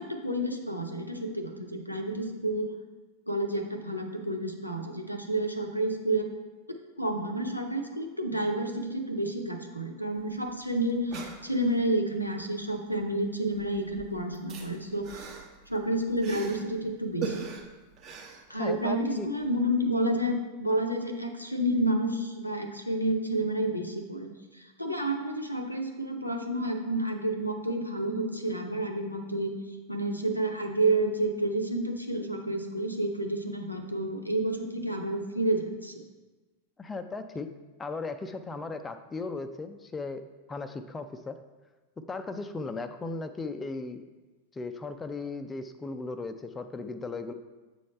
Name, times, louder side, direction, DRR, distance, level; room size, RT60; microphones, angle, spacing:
voice 1, 0.0-2.7 3.3-6.3 7.0-15.3 15.7-17.5 18.5-24.3 24.6-29.5 29.9-36.0, right 1 dB, 90° left, 3 dB, 0.6 m, -30 dB
sound 1, 10.2-10.3 10.5-10.6 10.9-11.9 13.0-13.3 13.5-16.8 17.2-19.1 19.4-19.5, right 5 dB, 40° right, 0.9 m, -41 dB
voice 2, 18.5-19.3 36.8-37.5 37.8-40.2 40.5-41.4 42.1-44.0 44.5-47.3, left 3 dB, 15° left, 8 dB, 0.3 m, -36 dB
7.7 x 3.1 x 5.3 m, 1.2 s
figure-of-eight pair, 90°, 0 cm